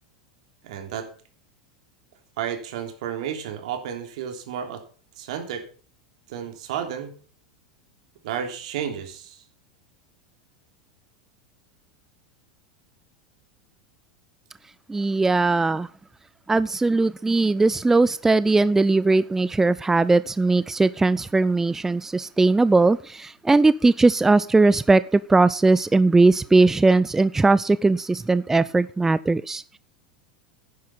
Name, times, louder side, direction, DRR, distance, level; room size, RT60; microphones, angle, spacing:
voice 1, 0.6-1.1 2.4-4.8 5.2-5.7 6.3-7.1 8.2-9.4, right 8 dB, 65° right, 3.1 m, -32 dB
voice 2, 14.9-15.9 16.5-29.8, right 3 dB, 10° right, 0.5 m, -19 dB
10.5 x 10.5 x 5.7 m
hypercardioid pair, 90°, 4 cm